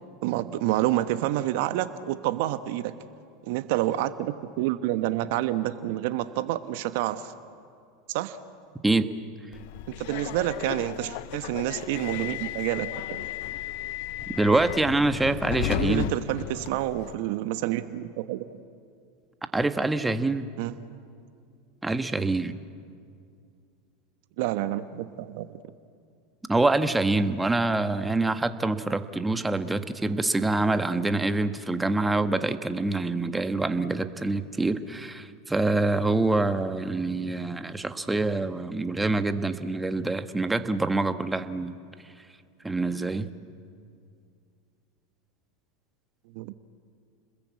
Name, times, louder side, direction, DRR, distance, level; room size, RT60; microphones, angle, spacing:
voice 1, 0.2-2.9 3.5-7.3 8.1-8.4 10.0-13.2 15.8-18.6 20.6-20.7 24.4-25.6 46.3-46.5, right 14 dB, 65° right, 11 dB, 1.1 m, -28 dB
Subway metro underground, 9.5-17.1, left 16 dB, 60° left, 0.7 m, -34 dB
voice 2, 14.4-16.1 19.5-20.5 21.8-22.6 26.5-41.7 42.6-43.3, right 2 dB, 10° right, 9 dB, 1.5 m, -25 dB
30.0 x 21.0 x 8.4 m, 2.3 s
hypercardioid pair, 90°, 0 cm